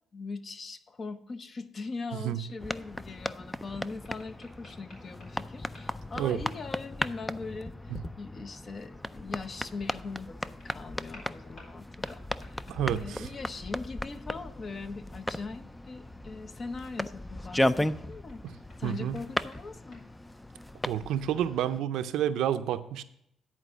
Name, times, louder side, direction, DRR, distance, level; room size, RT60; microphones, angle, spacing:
voice 1, 0.1-18.4 18.8-20.0, left 4 dB, 40° left, 10 dB, 0.8 m, -41 dB
sound 1, 2.6-21.8, left 1 dB, 10° left, 0.3 m, -36 dB
sound 2, 3.8-6.0 6.4-6.7 10.6-10.7 11.1-13.8 16.8-20.1, left 2 dB, 60° left, 4.1 m, -57 dB
voice 2, 12.7-13.3 18.4-18.5 18.8-19.2 20.9-23.0, right 10 dB, 85° right, 11 dB, 0.5 m, -30 dB
10.5 x 4.6 x 6.1 m, 0.76 s
cardioid pair, 90°, 0 cm